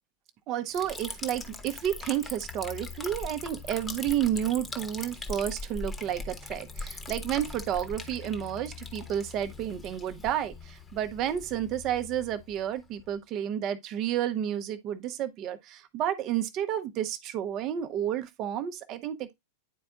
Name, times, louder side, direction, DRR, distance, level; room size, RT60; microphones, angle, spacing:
voice 1, 0.5-19.3, right 10 dB, 35° right, 0.8 m, -31 dB
Liquid, 0.7-13.1, left 3 dB, 15° left, 1.1 m, -41 dB
10.0 x 4.4 x 2.4 m
figure-of-eight pair, 90°, 0 cm